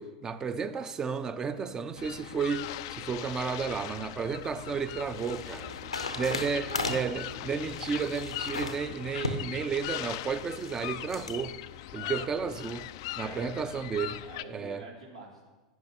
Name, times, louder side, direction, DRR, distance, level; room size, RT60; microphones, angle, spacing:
voice 1, 0.0-11.6 11.9-12.9 13.2-14.2 14.5-14.8, right 5 dB, 20° right, 0.6 m, -33 dB
voice 2, 1.4-1.7 6.3-7.2 8.0-8.1 11.9-12.3 13.1-13.7 14.2-15.5, right 2 dB, 85° right, 2.2 m, -47 dB
sound 1, 2.0-14.4, left 15 dB, 50° left, 0.3 m, -40 dB
sound 2, 4.1-11.4, left 2 dB, 85° left, 0.8 m, -38 dB
10.5 x 10.0 x 2.8 m
figure-of-eight pair, 95°, 3 cm